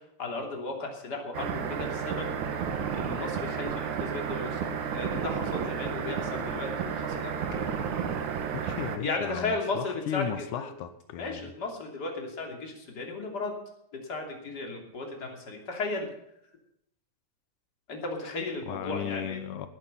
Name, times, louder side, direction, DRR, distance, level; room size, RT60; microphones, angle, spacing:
voice 1, 0.2-2.3 2.9-7.6 9.0-10.7 11.2-13.5 13.9-16.1 17.9-19.4, left 3 dB, 35° left, 2 dB, 3.3 m, -35 dB
sound 1, 1.3-9.0, right 7 dB, 75° right, 2.8 m, -32 dB
voice 2, 8.5-11.4 18.7-19.7, left 10 dB, 90° left, 10 dB, 2.5 m, -35 dB
19.0 x 9.7 x 5.7 m, 0.78 s
omnidirectional pair, 3.5 m